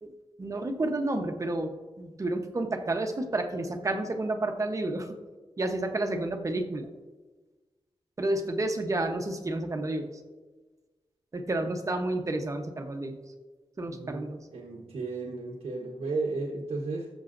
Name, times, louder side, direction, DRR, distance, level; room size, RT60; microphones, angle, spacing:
voice 1, 0.0-5.2 5.6-6.9 8.2-10.1 11.3-13.2 13.8-14.4, right 2 dB, 30° right, 5 dB, 1.0 m, -30 dB
voice 2, 13.9-17.1, right 3 dB, 80° right, -3 dB, 1.3 m, -34 dB
19.0 x 7.1 x 2.6 m, 1.3 s
wide cardioid pair, 150°, 10 cm